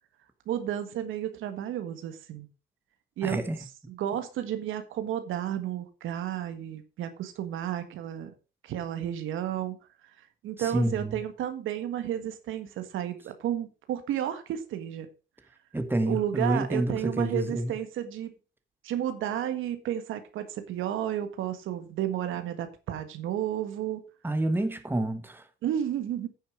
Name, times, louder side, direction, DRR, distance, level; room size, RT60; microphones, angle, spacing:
voice 1, 0.4-2.5 3.2-3.5 3.9-8.3 8.6-9.8 10.4-15.1 16.1-18.3 18.8-24.0 25.6-26.3, right 11 dB, 85° right, 1.6 m, -32 dB
voice 2, 3.2-3.6 10.6-11.2 15.7-17.7 24.2-25.4, right 1 dB, 10° right, 1.4 m, -28 dB
10.0 x 6.7 x 5.0 m
cardioid pair, 90°, 20 cm